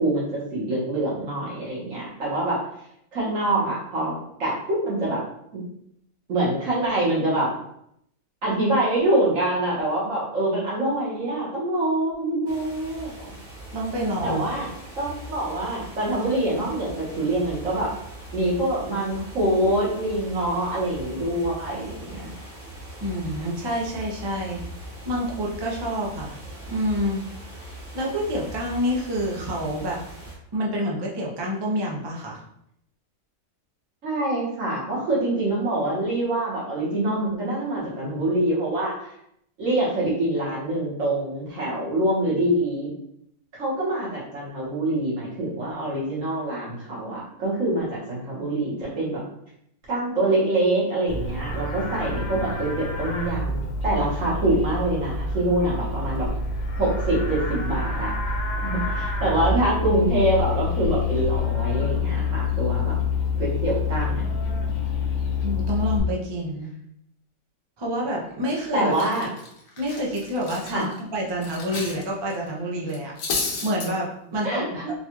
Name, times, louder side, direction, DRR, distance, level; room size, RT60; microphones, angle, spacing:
voice 1, 0.0-2.6 3.1-5.2 5.5-5.6 6.3-7.5 8.4-13.1 14.2-14.7 15.0-17.9 18.3-22.3 34.0-39.1 39.6-42.9 43.5-49.2 49.9-56.3 56.8-58.1 58.6-63.0 63.4-64.2 68.7-69.3 70.7-70.9 74.4-74.9, right 1 dB, 70° right, -5 dB, 1.6 m, -25 dB
sound 1, 12.5-30.4, right 1 dB, 10° right, 0.8 m, -40 dB
voice 2, 13.7-14.4 23.0-24.6 25.1-26.4 26.7-27.2 27.7-30.0 30.5-32.4 65.4-66.7 67.8-68.9 69.8-73.1 73.4-74.8, equal, 40° right, -2 dB, 0.4 m, -28 dB
Livestock farm animals working animals, 51.1-66.0, left 4 dB, 55° left, 0.5 m, -27 dB
Cutlery silverware, 68.3-68.6 68.9-72.0 72.3-72.5 72.9-73.9, left 4 dB, 90° left, 1.1 m, -32 dB
4.0 x 2.3 x 2.9 m, 0.74 s
omnidirectional pair, 1.4 m